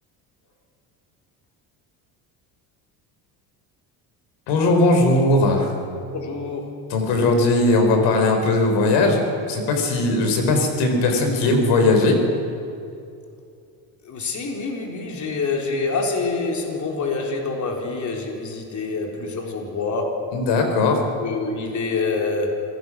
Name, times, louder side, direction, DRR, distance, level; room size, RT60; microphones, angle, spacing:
voice 1, 4.5-5.7 6.9-12.2 20.3-21.0, left 2 dB, 90° left, 4 dB, 4.2 m, -19 dB
voice 2, 6.1-6.8 14.1-20.3 21.2-22.6, left 3 dB, 45° left, 1 dB, 4.0 m, -26 dB
27.0 x 18.0 x 6.2 m, 2.5 s
cardioid pair, 105°, 40 cm